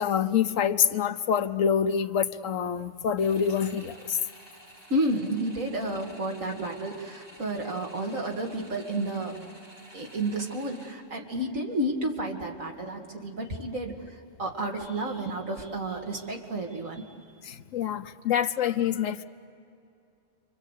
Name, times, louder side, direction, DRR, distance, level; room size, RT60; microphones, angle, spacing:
voice 1, 0.0-4.2 17.4-19.2, left 8 dB, 80° left, 11 dB, 1.2 m, -26 dB
sound 1, 3.2-10.9, right 1 dB, 20° right, 4.2 m, -51 dB
voice 2, 4.9-9.6 9.9-17.0, right 1 dB, 85° right, 1 dB, 2.7 m, -31 dB
29.0 x 24.5 x 8.2 m, 2.6 s
omnidirectional pair, 1.3 m